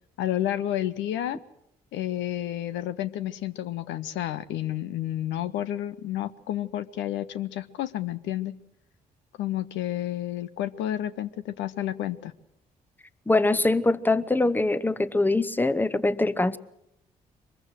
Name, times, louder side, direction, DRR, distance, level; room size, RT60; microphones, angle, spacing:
voice 1, 0.2-1.4 1.9-8.5 9.4-12.3, left 12 dB, 70° left, 14 dB, 0.8 m, -30 dB
voice 2, 13.3-16.6, left 2 dB, 10° left, 16 dB, 0.9 m, -23 dB
23.5 x 21.5 x 6.4 m, 0.80 s
hypercardioid pair, 40°, 20 cm